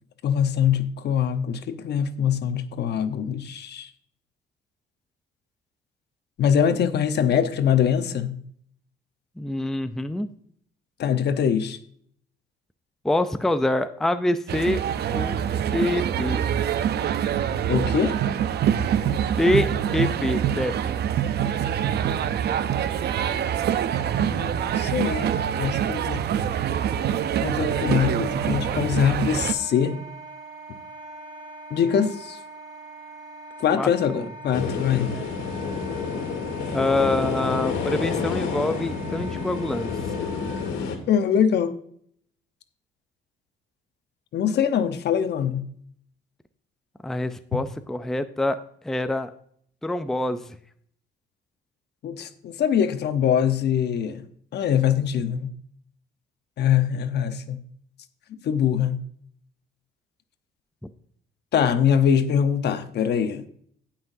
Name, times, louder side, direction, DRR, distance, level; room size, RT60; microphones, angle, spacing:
voice 1, 0.2-3.9 6.4-8.4 11.0-11.8 17.7-18.2 24.2-25.3 25.6-26.5 27.4-30.0 31.7-32.4 33.6-35.2 41.1-41.8 44.3-45.7 52.0-54.2 54.5-55.5 56.6-57.6 58.4-59.0 61.5-63.5, left 8 dB, 60° left, 0.9 m, -23 dB
voice 2, 9.4-10.3 13.0-14.8 15.1-15.4 15.7-16.4 19.4-20.9 33.7-34.3 35.1-35.3 36.7-39.9 47.0-48.6 48.8-49.3 49.8-50.6, left 1 dB, ahead, 0.5 m, -25 dB
sound 1, 14.5-29.5, right 9 dB, 60° right, 0.6 m, -25 dB
Wind instrument woodwind instrument, 27.7-40.7, right 2 dB, 25° right, 2.5 m, -42 dB
sound 2, 34.5-41.0, left 5 dB, 90° left, 1.9 m, -29 dB
17.0 x 5.8 x 2.7 m
cardioid pair, 110°, 19 cm